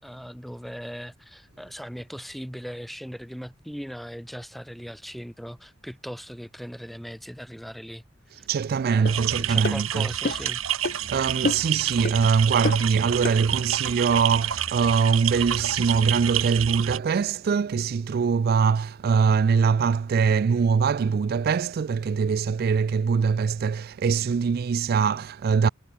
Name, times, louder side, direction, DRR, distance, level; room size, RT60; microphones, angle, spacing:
voice 1, 0.0-8.0 8.3-8.5 8.8-10.6, equal, ahead, 4.4 m, -39 dB
voice 2, 8.3-10.1 10.9-25.7, right 6 dB, 50° right, 0.3 m, -23 dB
sound 1, 9.1-9.2 9.6-9.8 10.3-10.5 10.8-11.0 11.5-11.8 12.1-12.2 12.7-12.9 13.2-13.4, left 3 dB, 45° left, 0.7 m, -28 dB
sound 2, 9.1-17.0, right 10 dB, 85° right, 1.8 m, -29 dB
head